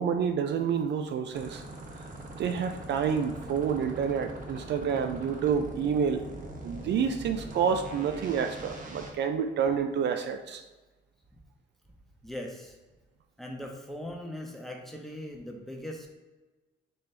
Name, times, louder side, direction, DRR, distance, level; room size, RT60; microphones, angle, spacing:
voice 1, 0.0-1.6 2.4-6.2 6.6-10.6, right 7 dB, 60° right, 6 dB, 0.4 m, -28 dB
sound 1, 1.3-9.1, right 2 dB, 40° right, 1.0 m, -42 dB
voice 2, 12.2-12.8 13.4-16.1, left 1 dB, ahead, 0 dB, 0.9 m, -40 dB
4.2 x 3.1 x 3.3 m, 1.2 s
cardioid pair, 90°, 20 cm